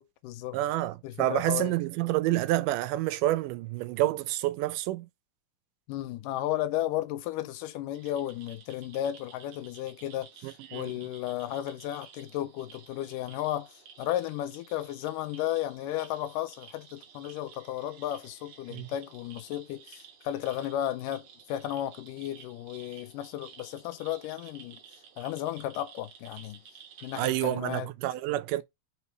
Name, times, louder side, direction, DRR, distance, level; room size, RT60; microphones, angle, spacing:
voice 1, 0.0-0.6 1.0-1.8 5.9-24.8 25.2-26.6 27.0-27.9, left 13 dB, 90° left, 2.3 m, -34 dB
voice 2, 0.5-5.1 10.4-10.9 18.7-18.9 27.2-28.6, right 15 dB, 85° right, 2.1 m, -28 dB
sound 1, 7.9-27.4, right 7 dB, 65° right, 2.5 m, -53 dB
5.4 x 4.2 x 4.6 m
omnidirectional pair, 3.8 m